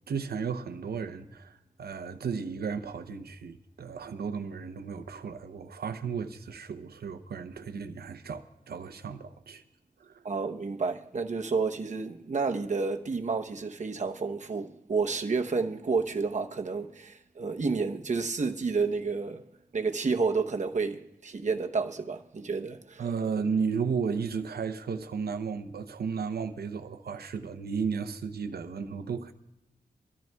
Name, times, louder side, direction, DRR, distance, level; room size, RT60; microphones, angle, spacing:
voice 1, 0.1-9.6 10.0-10.2 23.0-29.3, right 5 dB, 85° right, 0.7 m, -34 dB
voice 2, 10.2-19.4 19.7-23.0, right 4 dB, 50° right, 0.9 m, -30 dB
24.5 x 13.5 x 2.3 m
wide cardioid pair, 100°, 16 cm